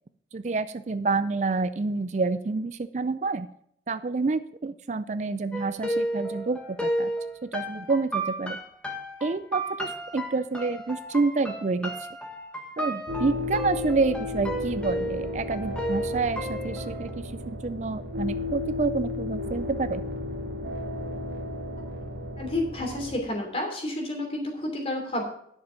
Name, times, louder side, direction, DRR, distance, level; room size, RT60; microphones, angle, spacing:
voice 1, 0.3-3.5 3.9-7.1 7.4-8.6 9.2-11.9 12.8-20.0, right 3 dB, 40° right, 13 dB, 0.4 m, -28 dB
sound 1, 5.5-17.1, right 1 dB, 5° left, 1.4 m, -33 dB
sound 2, 13.1-23.2, left 2 dB, 60° right, 1.9 m, -34 dB
voice 2, 22.4-25.2, left 1 dB, 35° left, 2 dB, 3.0 m, -30 dB
10.5 x 6.7 x 5.7 m, 0.69 s
head